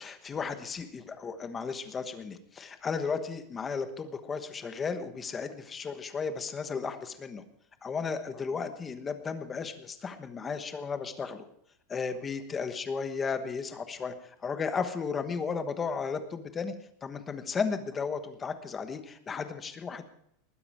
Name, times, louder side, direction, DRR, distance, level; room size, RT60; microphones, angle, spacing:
voice 1, 0.0-7.4 7.8-11.4 11.9-16.7 17.0-20.1, left 5 dB, 15° left, 9 dB, 1.2 m, -34 dB
20.0 x 9.7 x 4.8 m, 0.72 s
supercardioid pair, 175°, 0 cm